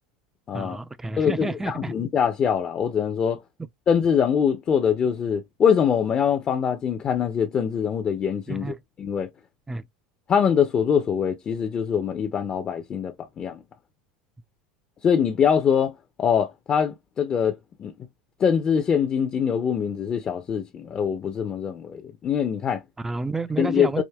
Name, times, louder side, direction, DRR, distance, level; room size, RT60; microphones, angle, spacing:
voice 1, 0.5-1.9 3.6-3.7 8.5-8.8 9.7-9.9 23.0-24.0, right 3 dB, 10° right, 0.4 m, -30 dB
voice 2, 1.2-3.4 3.9-9.3 10.3-13.6 15.0-17.9 18.4-22.8 23.6-24.0, left 7 dB, 30° left, 0.6 m, -23 dB
4.9 x 2.5 x 2.2 m
hypercardioid pair, 80°, 3 cm